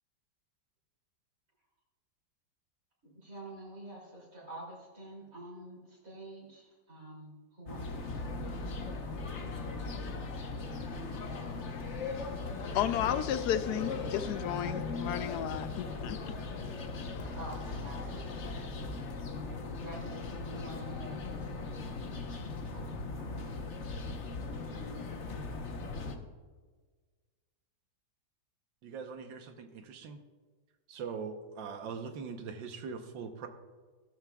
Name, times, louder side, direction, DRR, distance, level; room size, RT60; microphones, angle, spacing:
voice 1, 3.0-11.7 17.2-18.8 19.6-22.1 22.7-23.6, right 2 dB, 50° right, 3.2 m, -49 dB
sound 1, 7.7-26.2, left 3 dB, 45° left, 1.1 m, -38 dB
voice 2, 12.7-16.4, left 10 dB, 70° left, 1.0 m, -33 dB
voice 3, 28.8-30.2 30.9-33.5, right 5 dB, 85° right, 1.6 m, -41 dB
16.5 x 12.0 x 2.3 m
omnidirectional pair, 2.0 m